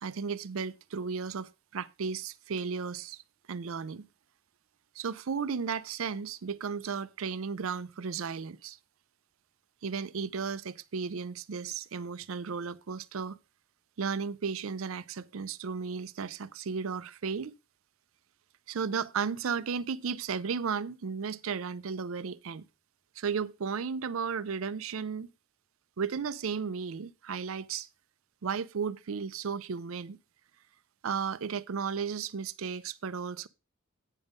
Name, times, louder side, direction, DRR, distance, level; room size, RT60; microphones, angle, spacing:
voice 1, 0.0-3.2 3.5-4.1 5.0-8.8 9.8-13.4 14.0-17.5 18.7-22.6 23.2-25.3 26.0-27.9 28.4-30.2 31.0-33.5, right 6 dB, 70° right, 0.5 m, -34 dB
9.1 x 5.4 x 5.2 m
head